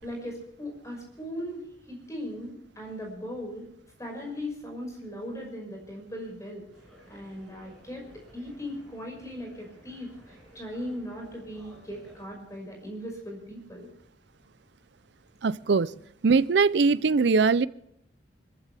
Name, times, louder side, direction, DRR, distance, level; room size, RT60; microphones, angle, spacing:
voice 1, 0.0-3.7 4.0-6.7 7.1-13.9, equal, 15° left, 1 dB, 5.7 m, -38 dB
sound 1, 6.7-12.3, equal, ahead, 5.8 m, -54 dB
voice 2, 15.4-15.9 16.2-17.7, right 4 dB, 65° right, 18 dB, 0.5 m, -21 dB
24.5 x 15.0 x 3.4 m, 0.74 s
head